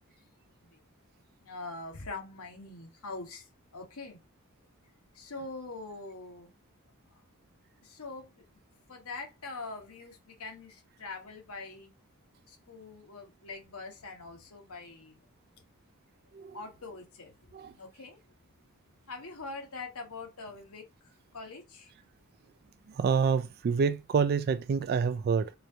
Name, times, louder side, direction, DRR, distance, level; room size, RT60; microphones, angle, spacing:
voice 1, 1.4-3.5 3.7-4.2 5.1-6.5 7.8-8.3 8.9-11.9 12.5-15.2 16.5-17.5 17.8-18.2 19.1-20.8 21.3-21.9, left 3 dB, 75° left, 1.3 m, -43 dB
voice 2, 16.3-16.6 17.5-17.7 22.9-25.5, right 6 dB, 45° right, 0.3 m, -27 dB
4.6 x 2.6 x 2.8 m
head